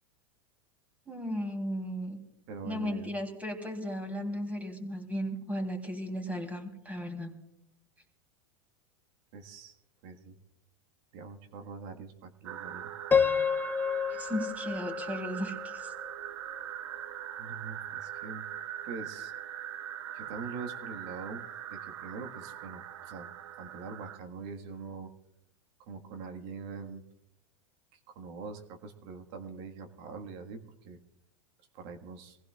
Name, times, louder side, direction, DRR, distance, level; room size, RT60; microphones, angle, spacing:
voice 1, 1.1-2.2 2.6-7.3 14.1-15.9, equal, 10° right, 3 dB, 3.3 m, -35 dB
voice 2, 2.5-3.1 9.3-9.8 10.0-10.3 11.1-12.9 17.4-18.4 18.8-19.3 20.1-23.3 23.6-25.1 25.8-27.0 27.9-31.0 31.7-32.4, right 4 dB, 60° right, 5 dB, 1.7 m, -43 dB
sound 1, 12.4-24.2, right 10 dB, 75° right, 0.9 m, -41 dB
Piano, 13.1-16.1, left 6 dB, 10° left, 0.5 m, -29 dB
24.0 x 16.0 x 2.4 m, 0.87 s
hypercardioid pair, 105°, 15 cm